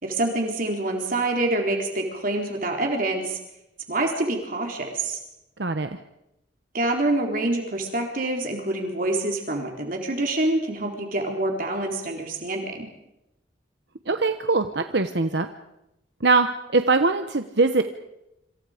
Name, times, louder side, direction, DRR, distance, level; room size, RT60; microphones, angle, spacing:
voice 1, 0.0-3.4 3.9-5.2 6.7-12.9, right 2 dB, 45° right, 2 dB, 3.7 m, -26 dB
voice 2, 5.6-5.9 14.1-15.5 16.2-16.5 16.7-17.8, right 3 dB, 65° right, 8 dB, 1.1 m, -21 dB
27.5 x 27.0 x 5.1 m, 0.87 s
head